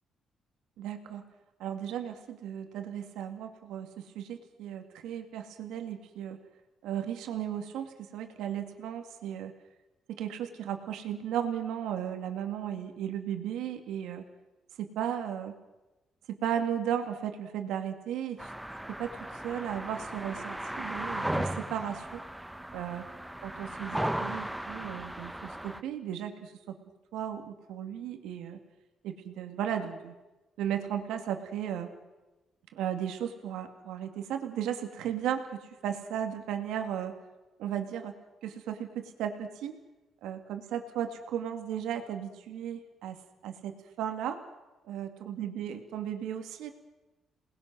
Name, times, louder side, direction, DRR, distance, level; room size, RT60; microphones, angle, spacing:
voice 1, 0.8-1.2 1.6-6.4 6.8-9.5 10.1-14.2 14.8-15.5 16.3-18.5 19.0-19.2 19.4-22.2 22.7-23.0 23.4-26.8 27.1-28.6 29.0-30.2 30.6-31.9 32.7-37.1 37.6-38.1 38.4-39.7 40.2-43.2 43.4-44.4 44.9-46.7, right 9 dB, 90° right, 5 dB, 2.2 m, -35 dB
sound 1, 18.4-25.8, right 1 dB, 5° right, 0.9 m, -36 dB
28.5 x 20.0 x 6.3 m, 1.1 s
cardioid pair, 90°, 0 cm